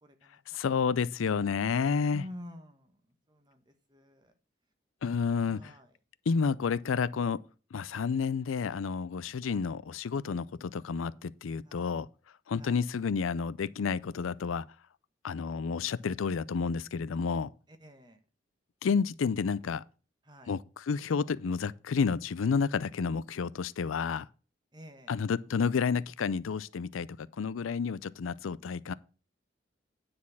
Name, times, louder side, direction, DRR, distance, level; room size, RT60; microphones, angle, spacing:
voice 1, 0.0-0.4 2.1-3.0 3.3-4.3 5.4-5.9 11.6-11.9 12.6-12.8 17.7-18.2 20.2-20.5 24.7-25.1, left 1 dB, 20° right, 1.1 m, -49 dB
voice 2, 0.5-2.2 5.0-5.7 6.3-7.4 7.7-12.1 12.5-14.6 15.2-17.5 18.8-19.8 20.5-24.3 25.1-28.9, left 5 dB, 90° left, 0.4 m, -30 dB
9.6 x 4.3 x 7.0 m
head